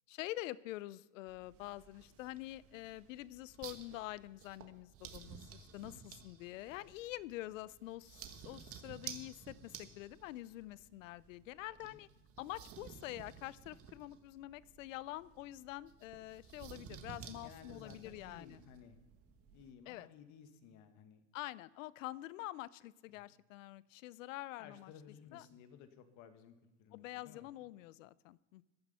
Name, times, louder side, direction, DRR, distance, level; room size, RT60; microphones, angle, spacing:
voice 1, 0.1-12.1 12.4-18.6 19.9-20.1 21.3-24.9 25.3-25.5 26.9-28.6, left 17 dB, 80° left, 21 dB, 0.6 m, -46 dB
sound 1, 1.3-19.7, right 8 dB, 35° right, 1.5 m, -54 dB
voice 2, 17.1-19.0 19.5-21.2 23.2-23.3 24.6-27.5, left 7 dB, 45° left, 9 dB, 1.6 m, -57 dB
14.5 x 10.5 x 5.5 m, 1.1 s
supercardioid pair, 120°, 39 cm